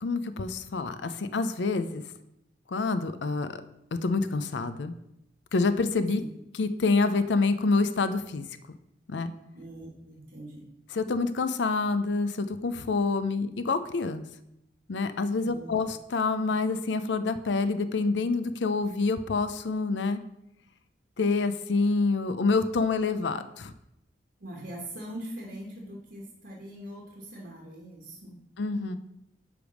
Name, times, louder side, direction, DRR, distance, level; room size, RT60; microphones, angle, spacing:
voice 1, 0.0-2.0 2.7-3.6 4.0-4.9 5.5-6.2 6.6-8.5 9.1-9.3 10.9-14.2 14.9-20.2 21.2-23.7 28.6-29.0, left 3 dB, 85° left, 11 dB, 0.5 m, -27 dB
voice 2, 9.5-10.7 15.4-15.7 24.4-28.4, right 1 dB, 60° right, -2 dB, 1.4 m, -42 dB
9.7 x 3.5 x 6.2 m, 0.83 s
head